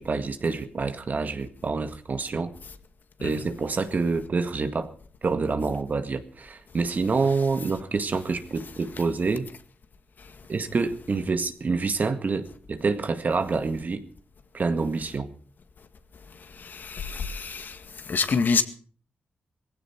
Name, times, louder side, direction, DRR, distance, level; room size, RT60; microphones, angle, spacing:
voice 1, 0.0-2.5 3.2-4.9 5.2-9.5 10.5-14.0 14.5-15.3, right 4 dB, 55° right, 1.9 m, -27 dB
voice 2, 16.7-17.8 18.1-18.6, left 5 dB, 65° left, 1.9 m, -26 dB
18.5 x 16.0 x 4.6 m
cardioid pair, 60°, 3 cm